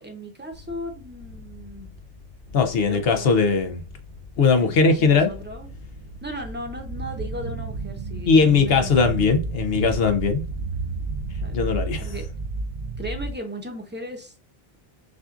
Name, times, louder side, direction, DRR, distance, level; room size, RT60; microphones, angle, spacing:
voice 1, 0.0-1.9 2.8-3.3 4.6-5.7 6.2-8.9 11.4-11.6 12.0-12.3 13.0-14.3, equal, 10° right, 0.8 m, -36 dB
sound 1, 0.5-7.6, left 4 dB, 90° left, 2.0 m, -45 dB
voice 2, 2.5-3.8 4.4-5.3 8.2-10.4 11.5-12.1, left 4 dB, 70° left, 0.9 m, -19 dB
sound 2, 5.2-13.3, right 3 dB, 55° right, 0.5 m, -32 dB
6.1 x 2.4 x 2.5 m
omnidirectional pair, 1.0 m